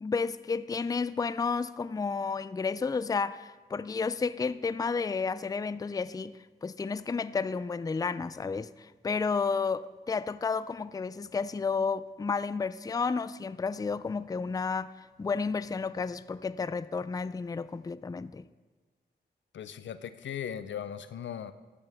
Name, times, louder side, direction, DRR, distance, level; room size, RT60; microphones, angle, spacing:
voice 1, 0.0-14.9 15.2-18.5, left 5 dB, 20° left, 0.4 m, -31 dB
voice 2, 19.5-21.5, left 9 dB, 90° left, 0.6 m, -38 dB
14.0 x 11.0 x 3.4 m
cardioid pair, 60°, 19 cm